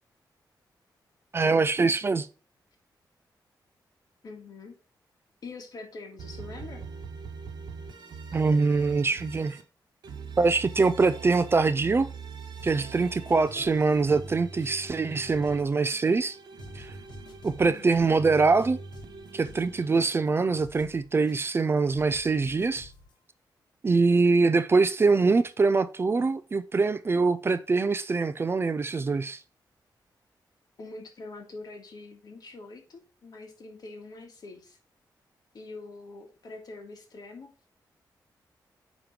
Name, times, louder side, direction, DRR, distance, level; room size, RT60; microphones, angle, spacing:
voice 1, 1.3-2.3 8.3-9.6 10.4-12.1 12.6-16.4 16.8-16.9 17.4-18.8 19.3-22.9 23.8-29.4, right 4 dB, 30° right, 0.5 m, -24 dB
voice 2, 4.2-4.8 5.4-6.8 17.6-18.1 30.8-34.8 35.5-37.7, left 3 dB, 60° left, 1.9 m, -44 dB
sound 1, 6.2-9.6 10.0-15.6 16.0-19.9, right 5 dB, 75° right, 1.3 m, -42 dB
sound 2, 12.6-12.9 13.2-15.0 15.2-16.3 16.6-18.3 18.6-20.3 20.6-21.6 21.9-23.1, left 4 dB, 75° left, 1.4 m, -51 dB
8.8 x 3.1 x 5.1 m
wide cardioid pair, 115°, 8 cm